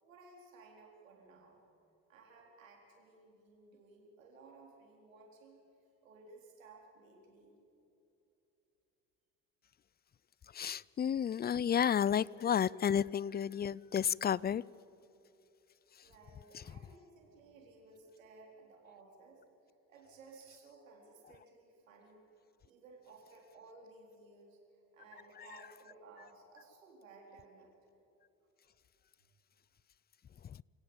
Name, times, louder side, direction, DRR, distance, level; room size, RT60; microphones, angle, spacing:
voice 1, 0.0-1.6 2.1-5.6 6.0-7.6 10.6-10.8 16.0-19.4 19.9-22.3 22.6-24.6 24.9-27.7, right 3 dB, 90° right, 4.2 m, -58 dB
voice 2, 10.5-14.6 16.5-16.6, left 8 dB, 25° left, 0.5 m, -31 dB
28.0 x 17.5 x 7.3 m
hypercardioid pair, 55°, 38 cm